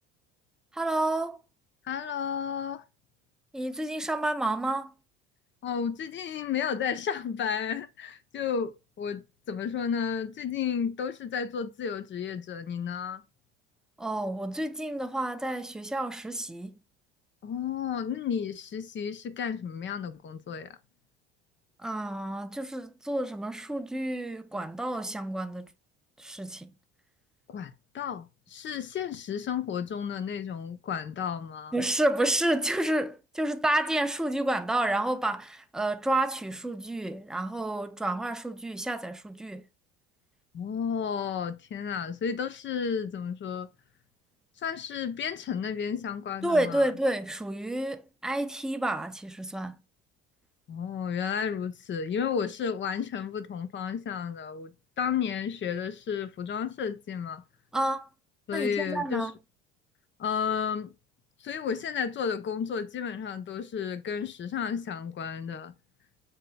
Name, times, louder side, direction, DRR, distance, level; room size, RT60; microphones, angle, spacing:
voice 1, 0.7-1.4 3.5-4.9 14.0-16.8 21.8-25.7 26.2-26.7 31.7-39.7 46.4-49.8 57.7-58.1 58.5-59.3, right 1 dB, ahead, 0.5 m, -30 dB
voice 2, 1.8-2.8 5.6-13.2 17.4-20.7 27.5-31.7 40.5-43.7 44.6-46.8 50.7-57.4 58.5-59.3 60.2-60.9 61.4-65.7, left 7 dB, 40° left, 0.7 m, -32 dB
7.3 x 2.9 x 2.3 m
supercardioid pair, 90°, 31 cm